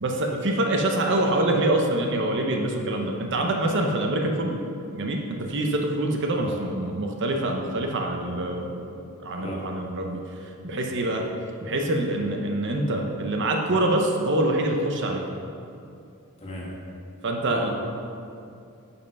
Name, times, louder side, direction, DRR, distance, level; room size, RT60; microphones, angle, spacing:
voice 1, 0.0-4.6 4.9-10.2 10.6-11.3 11.6-15.3 17.2-17.7, right 1 dB, 55° right, 2 dB, 0.9 m, -25 dB
voice 2, 9.4-9.8 16.4-16.7 17.4-17.7, equal, 30° left, -4 dB, 1.8 m, -35 dB
10.0 x 5.6 x 5.4 m, 2.5 s
head